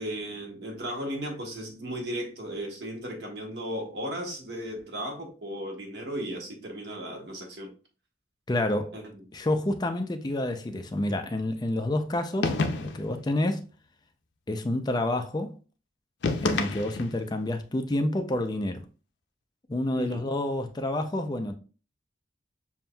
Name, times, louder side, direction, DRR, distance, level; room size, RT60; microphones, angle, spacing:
voice 1, 0.0-7.7 8.9-9.0 19.9-20.2, equal, 65° right, 1.3 m, -35 dB
voice 2, 8.5-9.0 9.3-12.5 12.8-13.7 14.5-15.5 16.4-18.8 19.7-21.5, left 1 dB, 25° left, 0.4 m, -28 dB
sound 1, 12.4-13.2 16.2-17.3, left 3 dB, 85° left, 0.5 m, -28 dB
7.0 x 2.6 x 2.3 m
head